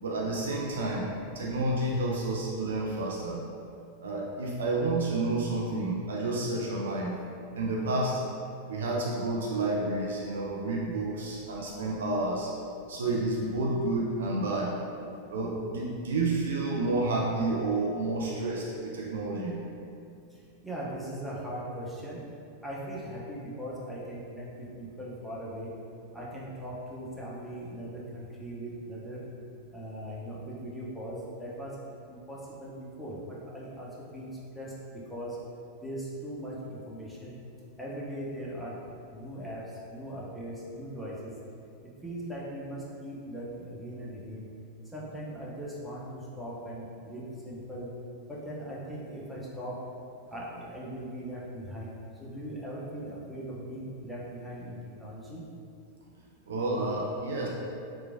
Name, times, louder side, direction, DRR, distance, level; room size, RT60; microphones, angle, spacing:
voice 1, 0.0-3.4 4.0-7.1 7.6-8.2 8.7-12.5 12.9-14.7 15.3-19.6 56.5-57.5, right 2 dB, 65° right, -3 dB, 0.3 m, -30 dB
voice 2, 20.3-22.2 22.6-25.7 26.1-29.2 29.7-31.7 32.1-34.7 35.1-35.4 35.8-37.4 37.8-38.8 39.1-41.3 41.8-44.5 44.9-47.9 48.3-49.8 50.3-55.4, right 1 dB, ahead, -7 dB, 0.6 m, -39 dB
2.9 x 2.2 x 2.4 m, 2.5 s
figure-of-eight pair, 90°, 0 cm